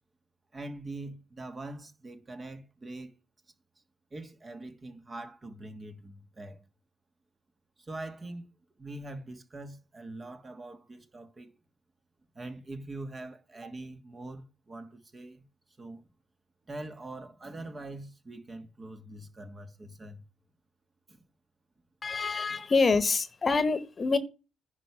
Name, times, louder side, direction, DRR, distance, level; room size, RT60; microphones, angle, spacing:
voice 1, 0.5-3.2 4.1-6.6 7.8-8.5 8.8-11.5 12.3-15.4 15.8-16.0 16.7-20.2 21.1-21.2 22.5-22.6, right 2 dB, 30° right, 1.4 m, -43 dB
voice 2, 22.0-24.2, left 4 dB, 35° left, 1.1 m, -26 dB
10.5 x 4.8 x 5.9 m
cardioid pair, 90°, 0 cm